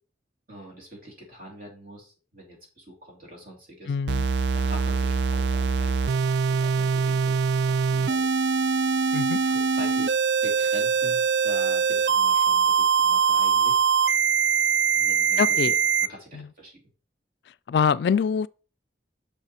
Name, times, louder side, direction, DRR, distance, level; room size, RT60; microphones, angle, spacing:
voice 1, 0.5-3.9 4.5-8.5 9.4-10.2 10.4-13.8 14.9-15.7 16.1-16.7, equal, 55° right, 3.2 m, -44 dB
voice 2, 3.9-4.3 9.1-9.4 15.4-15.7 16.3-16.5 17.7-18.5, left 6 dB, 70° left, 0.3 m, -24 dB
sound 1, 4.1-16.1, right 6 dB, 75° right, 0.4 m, -23 dB
6.6 x 5.7 x 4.3 m
head